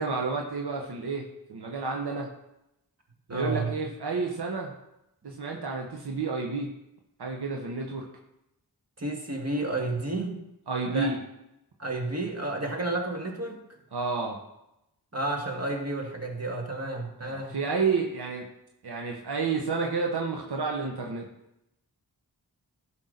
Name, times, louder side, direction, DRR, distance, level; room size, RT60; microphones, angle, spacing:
voice 1, 0.0-2.3 3.3-4.7 5.2-6.7 7.2-8.0 10.7-11.2 13.9-14.4 17.2-18.5 18.8-21.3, right 4 dB, 75° right, 0 dB, 1.2 m, -30 dB
voice 2, 3.3-3.7 9.0-10.4 10.9-11.1 11.8-13.6 15.1-17.6, right 2 dB, 40° right, 1 dB, 2.0 m, -31 dB
12.0 x 5.9 x 4.0 m, 0.85 s
cardioid pair, 40°, 40 cm